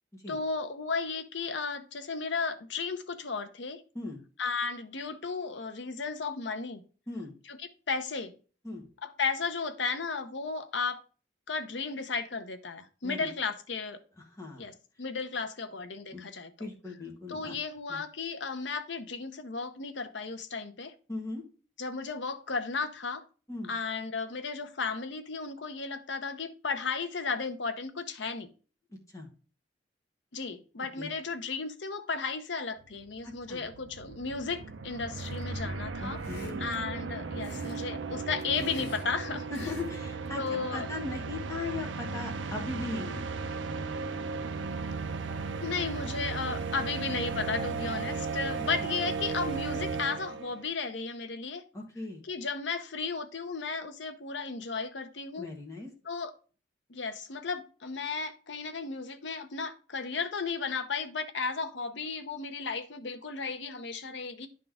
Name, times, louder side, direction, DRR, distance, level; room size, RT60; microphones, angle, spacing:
voice 1, 0.3-3.8 4.4-6.8 7.5-8.3 9.0-11.0 11.5-14.0 14.6-16.7 17.3-20.9 21.8-23.2 23.7-28.5 30.3-36.2 36.6-39.7 40.4-40.9 45.6-51.6 52.2-55.5 56.0-56.3 56.9-64.5, left 4 dB, 70° left, 0.8 m, -34 dB
voice 2, 14.3-14.6 16.1-16.3 16.6-17.5 17.9-18.0 21.1-21.4 23.5-23.7 28.9-29.3 31.0-31.1 33.2-33.6 36.0-36.7 39.5-43.2 51.7-52.2 55.4-55.9, left 3 dB, 15° left, 1.5 m, -38 dB
sound 1, 32.9-33.0 33.2-50.6, right 4 dB, 80° right, 0.6 m, -36 dB
sound 2, 35.2-35.6 36.2-36.8 37.4-37.8 38.2-39.1 39.5-40.0 40.3-40.5, left 2 dB, 55° left, 2.1 m, -48 dB
10.5 x 3.8 x 3.5 m
head